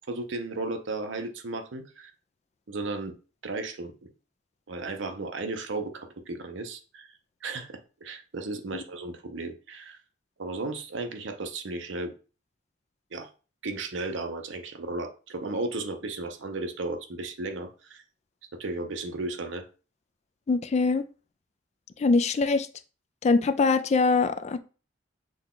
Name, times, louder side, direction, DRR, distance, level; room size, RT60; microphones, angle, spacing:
voice 1, 0.1-2.1 2.7-3.1 3.4-3.9 4.7-7.1 7.4-10.0 10.4-12.1 13.1-13.3 13.6-18.0 18.6-19.6, right 2 dB, 75° right, 0.7 m, -34 dB
voice 2, 20.5-21.0 22.0-22.7 23.2-24.6, left 4 dB, 35° left, 0.3 m, -23 dB
6.2 x 2.3 x 3.7 m
head